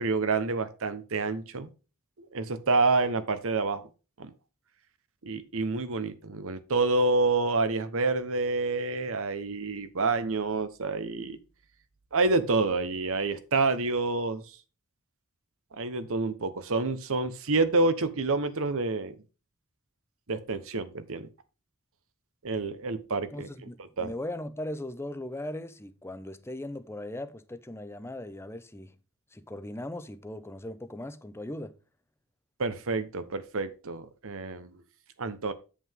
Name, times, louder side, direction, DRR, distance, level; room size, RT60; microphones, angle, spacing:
voice 1, 0.0-1.7 2.3-3.8 4.2-4.3 5.2-11.4 12.1-14.4 15.7-19.2 20.3-21.3 22.4-23.7 24.0-24.1 32.6-34.7 35.2-35.5, right 3 dB, 65° right, 1.0 m, -28 dB
voice 2, 23.3-29.0 29.3-31.7, left 1 dB, 10° left, 0.7 m, -38 dB
8.4 x 7.7 x 3.6 m
head